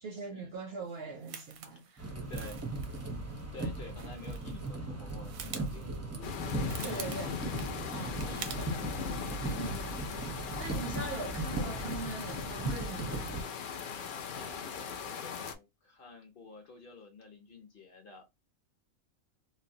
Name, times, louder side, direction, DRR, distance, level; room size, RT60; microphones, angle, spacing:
voice 1, 0.0-2.1 6.8-7.4 7.9-8.2 9.6-10.0 10.6-13.4, right 3 dB, 60° right, 0.6 m, -41 dB
sound 1, 0.9-4.8 5.0-8.7 9.0-9.3, right 8 dB, 85° right, 1.0 m, -47 dB
sound 2, 2.0-13.4, right 2 dB, 20° right, 0.4 m, -38 dB
voice 2, 2.3-2.6 3.2-6.4 6.8-9.1 14.3-18.2, left 3 dB, 50° left, 0.8 m, -50 dB
sound 3, 6.2-15.6, left 6 dB, 75° left, 0.4 m, -39 dB
3.2 x 2.1 x 2.7 m
omnidirectional pair, 1.4 m